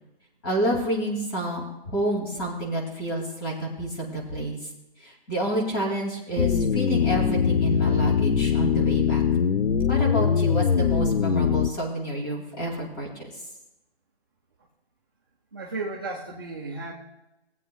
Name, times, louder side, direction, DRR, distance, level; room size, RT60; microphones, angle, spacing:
voice 1, 0.4-4.6 5.0-9.2 9.9-13.1, right 1 dB, 20° left, -2 dB, 2.3 m, -29 dB
sound 1, 6.4-11.7, left 7 dB, 80° left, 0.7 m, -22 dB
voice 2, 15.5-16.9, right 3 dB, 20° right, -3 dB, 0.7 m, -34 dB
19.5 x 8.3 x 2.3 m, 0.94 s
hypercardioid pair, 165°, 33 cm